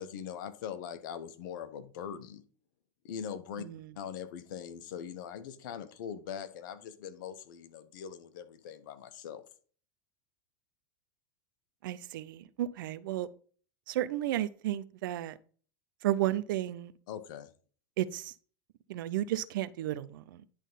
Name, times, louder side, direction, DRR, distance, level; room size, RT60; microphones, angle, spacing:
voice 1, 0.0-2.4 3.0-3.6 4.0-9.4 17.1-17.5, left 8 dB, 70° left, 1.0 m, -41 dB
voice 2, 3.6-3.9 11.8-13.3 13.9-15.4 16.0-16.9 18.0-18.3 18.9-20.5, right 13 dB, 70° right, 0.6 m, -33 dB
10.5 x 3.5 x 5.5 m
hypercardioid pair, 95°, 11 cm